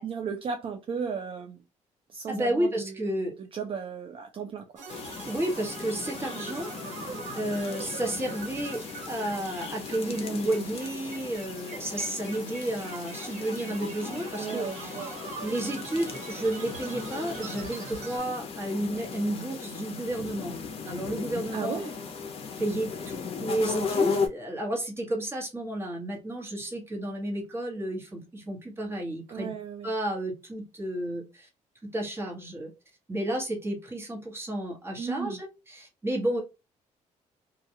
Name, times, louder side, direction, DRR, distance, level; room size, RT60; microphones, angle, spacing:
voice 1, 0.0-1.6 2.1-2.9 3.5-4.7 14.4-15.2 21.5-21.9 29.3-29.9 35.0-35.4, right 6 dB, 45° right, 5 dB, 0.4 m, -35 dB
voice 2, 2.3-3.3 5.3-6.7 7.3-8.8 9.1-20.6 20.8-21.8 22.6-29.5 29.8-31.5 31.8-32.7 33.1-36.4, right 1 dB, 20° right, 0 dB, 1.1 m, -32 dB
sound 1, 4.8-18.2, right 4 dB, 60° right, 1.3 m, -43 dB
sound 2, 4.9-24.3, left 5 dB, 45° left, 0.6 m, -36 dB
2.3 x 2.2 x 2.8 m, 0.27 s
cardioid pair, 120°, 13 cm